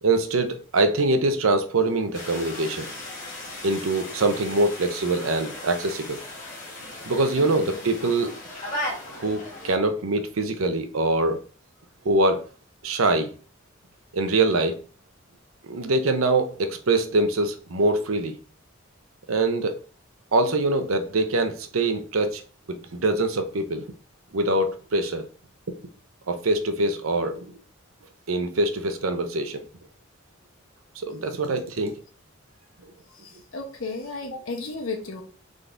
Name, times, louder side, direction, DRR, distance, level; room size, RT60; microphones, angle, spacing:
voice 1, 0.0-2.9 3.6-6.2 7.1-8.3 9.1-11.4 12.0-12.4 12.8-13.3 14.1-14.8 15.7-18.4 19.3-19.8 20.3-22.4 22.7-23.9 24.3-25.3 26.3-27.5 28.3-29.7 31.0-31.9, right 2 dB, 85° right, 0.7 m, -24 dB
sound 1, 2.1-9.8, left 1 dB, 40° left, 1.5 m, -37 dB
voice 2, 7.4-7.8 33.1-35.2, left 3 dB, 85° left, 1.2 m, -34 dB
3.8 x 3.8 x 3.4 m
head